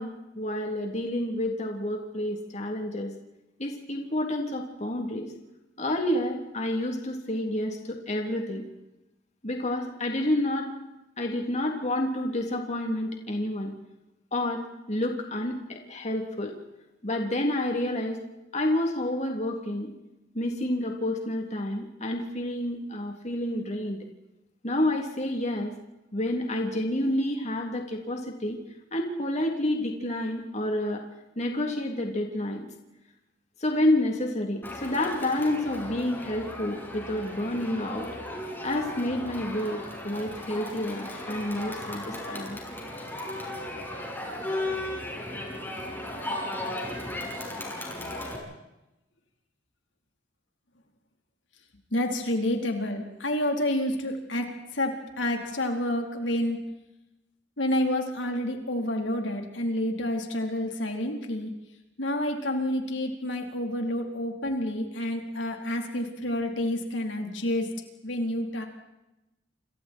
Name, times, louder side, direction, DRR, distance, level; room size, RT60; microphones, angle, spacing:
voice 1, 0.0-3.1 3.6-5.3 5.8-8.6 9.4-10.7 11.2-13.7 14.3-14.6 14.9-16.6 17.0-18.2 18.5-19.9 20.3-24.0 24.6-25.7 26.1-28.6 28.9-31.0 31.4-32.7 33.6-38.1 38.6-42.6, left 1 dB, 40° left, 2 dB, 3.5 m, -29 dB
Crowd, 34.6-48.4, left 1 dB, 10° left, 6.9 m, -36 dB
voice 2, 51.9-56.6 57.6-61.5 62.0-67.7 68.0-68.6, left 1 dB, 80° left, 3 dB, 4.3 m, -29 dB
29.5 x 27.5 x 4.7 m, 0.95 s
head